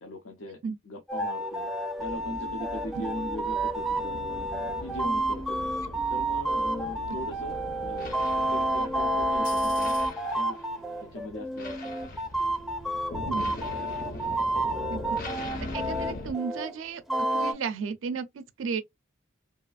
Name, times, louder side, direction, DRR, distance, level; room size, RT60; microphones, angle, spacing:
voice 1, 0.0-0.6 0.8-1.7 2.0-4.5 4.8-5.7 6.1-8.2 8.5-10.0 10.3-10.6 11.0-11.8, left 1 dB, 90° left, 0.6 m, -39 dB
sound 1, 1.1-16.7 17.1-17.5, right 1 dB, ahead, 0.4 m, -30 dB
sound 2, 2.0-10.1, equal, 70° left, 1.3 m, -45 dB
sound 3, 4.0-16.3, left 2 dB, 50° left, 0.6 m, -41 dB
voice 2, 15.4-18.8, right 5 dB, 90° right, 0.4 m, -34 dB
2.8 x 2.4 x 2.3 m
head